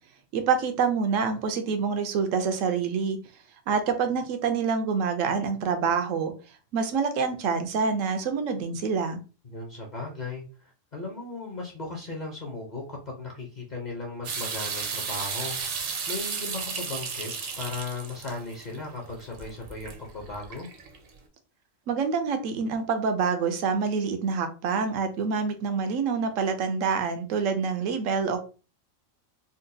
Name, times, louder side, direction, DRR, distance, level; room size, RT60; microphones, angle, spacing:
voice 1, 0.3-3.2 3.7-6.3 6.7-9.2 21.9-28.4, right 5 dB, 85° right, 7 dB, 1.0 m, -26 dB
voice 2, 9.4-15.6 16.1-20.7, left 3 dB, 45° left, -1 dB, 0.7 m, -37 dB
sound 1, 14.2-21.1, right 5 dB, 60° right, 0.7 m, -34 dB
3.9 x 2.2 x 2.6 m, 0.35 s
omnidirectional pair, 1.3 m